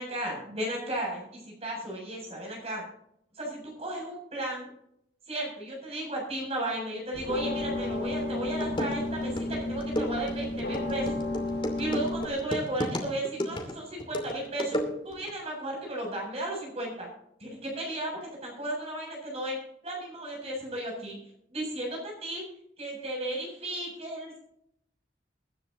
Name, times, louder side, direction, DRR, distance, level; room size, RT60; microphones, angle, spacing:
voice 1, 0.0-2.8 3.4-4.7 5.3-11.2 11.8-14.8 15.0-17.1 17.4-19.6 19.8-21.2 21.5-22.4 22.8-24.4, right 1 dB, 35° right, -2 dB, 7.7 m, -34 dB
sound 1, 7.1-12.3, left 2 dB, 70° left, 2.1 m, -32 dB
sound 2, 8.2-8.3 8.6-15.3, equal, 30° left, 2.8 m, -34 dB
24.0 x 12.0 x 2.9 m, 0.72 s
head